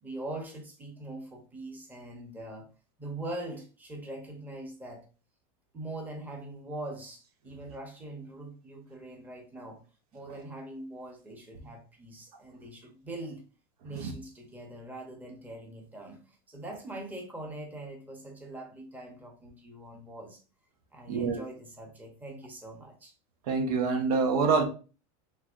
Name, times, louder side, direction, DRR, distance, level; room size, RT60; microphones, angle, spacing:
voice 1, 0.0-2.7 3.0-5.1 5.7-9.8 10.1-13.4 13.8-20.4 20.9-23.1, right 2 dB, 10° right, 0.9 m, -42 dB
voice 2, 21.1-21.4 23.5-24.6, right 4 dB, 75° right, 1.0 m, -26 dB
5.4 x 3.2 x 2.5 m
supercardioid pair, 150°, 19 cm